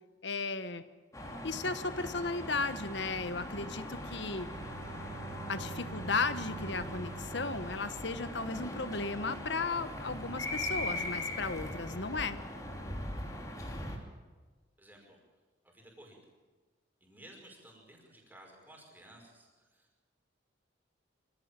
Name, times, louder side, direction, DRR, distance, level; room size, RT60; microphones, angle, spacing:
voice 1, 0.2-0.8 1.4-4.5 5.5-12.4, left 3 dB, 65° left, 11 dB, 1.3 m, -35 dB
sound 1, 1.1-14.0, left 1 dB, 15° left, 2.9 m, -40 dB
Bowed string instrument, 4.3-9.0, right 4 dB, 60° right, 1.8 m, -48 dB
voice 2, 14.8-15.2 15.6-16.2 17.0-19.9, right 1 dB, 10° right, 0 dB, 5.4 m, -55 dB
25.5 x 16.0 x 9.1 m, 1.3 s
head